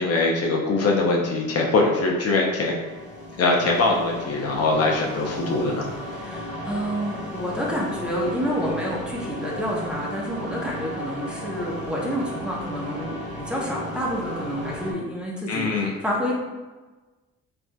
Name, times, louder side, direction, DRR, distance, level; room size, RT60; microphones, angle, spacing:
voice 1, 0.0-2.8 3.4-5.9 15.5-15.9, left 3 dB, 55° left, -1 dB, 0.7 m, -22 dB
sound 1, 2.4-14.9, left 1 dB, 20° left, 1.5 m, -35 dB
voice 2, 6.2-16.3, equal, 5° right, -4 dB, 0.8 m, -29 dB
3.5 x 2.5 x 2.2 m, 1.2 s
supercardioid pair, 65°, 30 cm